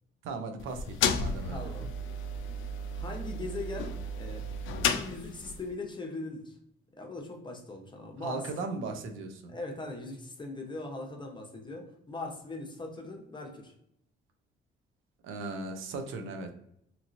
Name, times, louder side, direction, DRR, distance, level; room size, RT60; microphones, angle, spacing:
voice 1, 0.2-1.7 8.2-9.6 15.2-16.5, right 3 dB, 85° right, 5 dB, 0.6 m, -37 dB
sound 1, 0.6-5.7, left 4 dB, 75° left, 0.4 m, -33 dB
voice 2, 1.5-1.9 2.9-4.4 4.9-6.5 6.9-8.4 9.5-13.7, left 2 dB, 25° left, 2 dB, 0.8 m, -40 dB
2.9 x 2.8 x 2.5 m, 0.74 s
cardioid pair, 90°, 20 cm